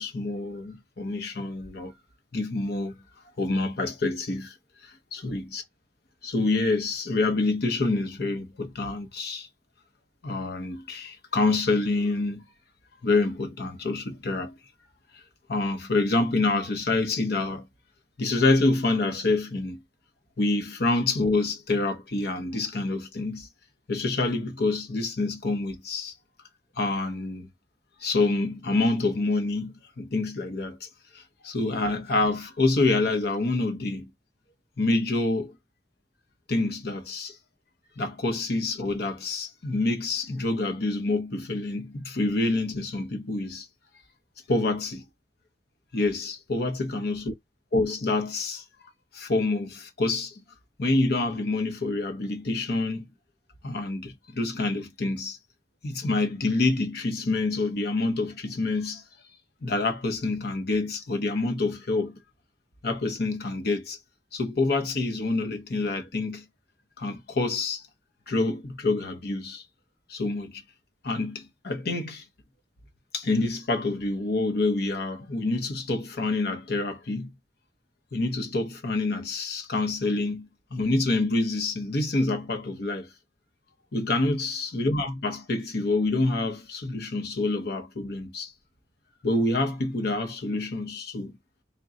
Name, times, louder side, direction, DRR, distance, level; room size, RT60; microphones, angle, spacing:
voice 1, 0.0-1.9 2.3-2.9 3.4-4.5 4.8-4.9 5.2-5.6 6.2-9.5 10.2-12.4 13.0-14.5 15.5-17.6 18.2-19.8 20.4-23.5 23.9-26.1 26.8-27.5 28.0-30.9 31.1-34.1 34.8-35.5 36.5-37.4 38.0-43.7 44.5-45.0 45.9-47.3 47.7-48.6 49.1-50.4 50.8-53.0 53.6-55.4 55.8-59.0 59.6-62.2 62.8-64.0 64.3-66.4 67.0-67.8 68.3-69.6 70.1-70.6 71.0-72.2 73.1-77.3 78.1-83.1 83.9-88.5 89.2-91.3, left 2 dB, 60° left, 0.8 m, -27 dB
3.7 x 2.2 x 3.7 m
head